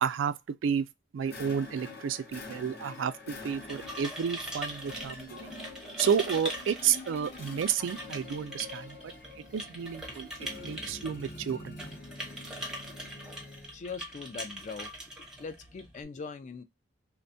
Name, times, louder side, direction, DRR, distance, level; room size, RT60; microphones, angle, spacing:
voice 1, 0.0-0.4 0.6-0.9 1.1-5.5 6.0-9.1 9.5-11.8, right 7 dB, 80° right, 0.3 m, -31 dB
sound 1, 1.2-13.8, left 2 dB, 55° left, 0.7 m, -46 dB
sound 2, 3.4-16.0, equal, 5° right, 0.6 m, -42 dB
voice 2, 13.7-14.9 15.4-16.6, left 5 dB, 40° left, 0.3 m, -41 dB
2.5 x 2.2 x 2.6 m
head